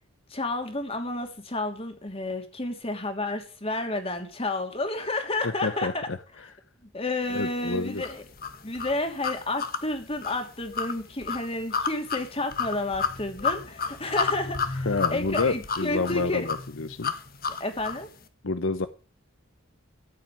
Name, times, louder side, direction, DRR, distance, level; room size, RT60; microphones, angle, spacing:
voice 1, 0.3-6.1 6.9-8.2 8.6-16.5 17.5-18.1, left 2 dB, 30° left, 5 dB, 3.1 m, -31 dB
voice 2, 5.6-5.9 7.3-8.0 14.9-17.1 18.4-18.9, left 3 dB, 70° left, 11 dB, 0.9 m, -28 dB
sound 1, 8.0-18.1, left 5 dB, 45° left, 1.5 m, -31 dB
15.0 x 6.0 x 9.3 m, 0.37 s
head